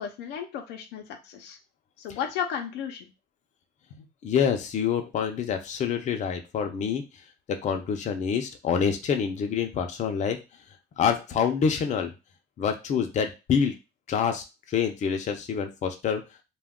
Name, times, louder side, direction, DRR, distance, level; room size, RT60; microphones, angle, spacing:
voice 1, 0.0-1.6 2.0-3.1 4.0-4.1, left 8 dB, 90° left, 5 dB, 0.6 m, -34 dB
voice 2, 4.2-7.0 7.5-10.4 11.0-12.1 12.6-13.7 14.1-16.2, left 7 dB, 45° left, 5 dB, 0.5 m, -26 dB
2.2 x 2.2 x 3.5 m, 0.27 s
cardioid pair, 110°, 17 cm